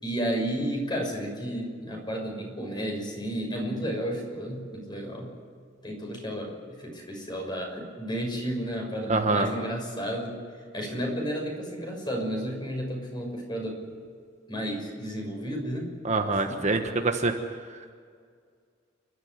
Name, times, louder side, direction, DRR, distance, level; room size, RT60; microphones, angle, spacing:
voice 1, 0.0-5.3 5.8-6.5 6.8-10.4 10.7-13.8 14.5-15.9 16.2-16.6, equal, 25° left, 1 dB, 6.3 m, -32 dB
voice 2, 9.1-9.5 16.0-17.3, right 3 dB, 40° right, 5 dB, 1.4 m, -25 dB
29.5 x 13.0 x 9.7 m, 2.1 s
head